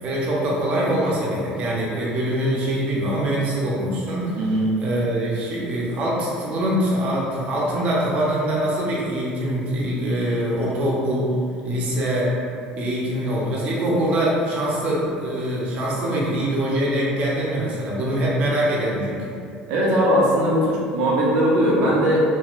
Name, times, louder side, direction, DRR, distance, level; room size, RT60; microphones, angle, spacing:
voice 1, 0.0-4.4 4.8-11.3 11.6-12.3 12.7-19.2, right 1 dB, 50° right, -5 dB, 0.7 m, -23 dB
voice 2, 4.4-4.7 19.7-22.2, equal, 85° right, -5 dB, 0.6 m, -19 dB
3.0 x 2.6 x 2.5 m, 2.4 s
cardioid pair, 125°, 3 cm